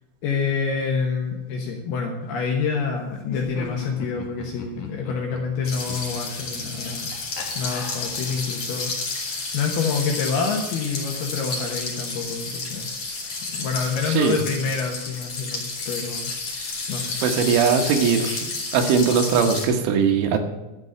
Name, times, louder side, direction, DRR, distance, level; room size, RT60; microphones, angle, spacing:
voice 1, 0.2-7.1 7.6-8.9 9.2-13.0 13.5-16.3 16.9-17.2, left 5 dB, 70° left, 1 dB, 2.5 m, -27 dB
Laughter, 3.2-8.6, left 4 dB, 85° left, 1.6 m, -39 dB
sound 1, 5.6-19.7, left 3 dB, 40° left, 3.5 m, -31 dB
voice 2, 17.2-20.4, right 6 dB, 75° right, 5 dB, 3.3 m, -20 dB
12.0 x 6.0 x 8.7 m, 1.0 s
omnidirectional pair, 5.9 m